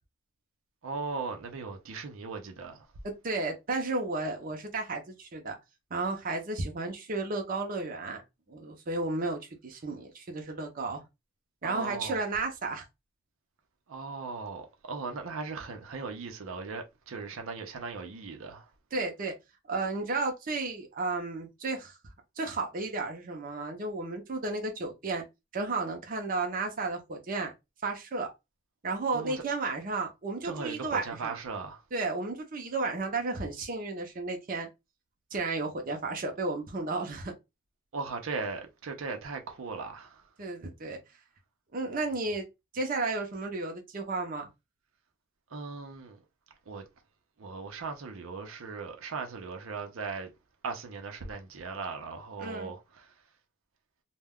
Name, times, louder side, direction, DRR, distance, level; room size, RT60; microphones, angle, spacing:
voice 1, 0.8-2.9 11.6-12.2 13.9-18.7 29.1-29.3 30.4-31.8 37.9-40.2 45.5-46.2 46.7-46.8 47.4-50.3 50.6-53.1, right 4 dB, 85° right, 0.6 m, -38 dB
voice 2, 3.0-5.6 5.9-8.2 8.5-11.0 11.6-12.8 18.9-19.3 19.7-22.0 22.4-25.2 25.5-27.5 27.8-28.3 28.8-31.4 31.9-34.7 35.3-37.3 40.4-41.0 41.7-42.5 42.7-44.5 52.4-52.7, right 3 dB, 45° right, 0.6 m, -33 dB
2.2 x 2.1 x 3.4 m
head